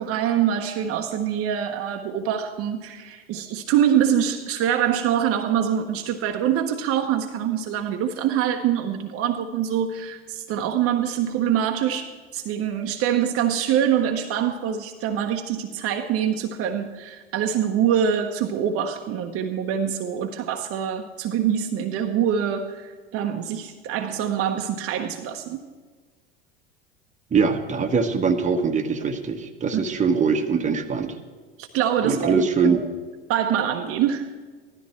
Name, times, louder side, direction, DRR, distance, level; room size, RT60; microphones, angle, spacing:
voice 1, 0.0-25.6 29.7-29.8 31.6-32.8 33.3-34.3, right 9 dB, 45° right, 5 dB, 1.1 m, -24 dB
voice 2, 27.3-31.2 32.0-32.8, right 5 dB, 25° right, 5 dB, 1.4 m, -22 dB
15.5 x 13.0 x 4.4 m, 1.4 s
hypercardioid pair, 80°, 31 cm